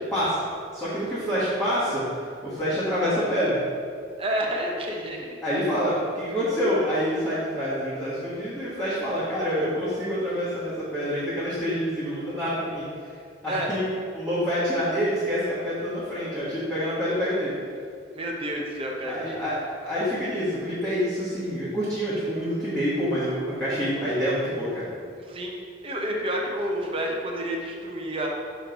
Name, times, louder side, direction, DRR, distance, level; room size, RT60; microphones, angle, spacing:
voice 1, 0.1-0.4 0.7-3.6 5.4-12.9 13.4-13.9 14.1-17.5 19.0-24.8, equal, 5° left, -14 dB, 1.3 m, -27 dB
voice 2, 4.2-5.4 13.5-13.7 18.1-19.1 19.4-19.5 25.3-25.5 25.8-28.3, right 1 dB, 30° right, 0 dB, 0.7 m, -29 dB
6.3 x 3.1 x 5.1 m, 2.3 s
head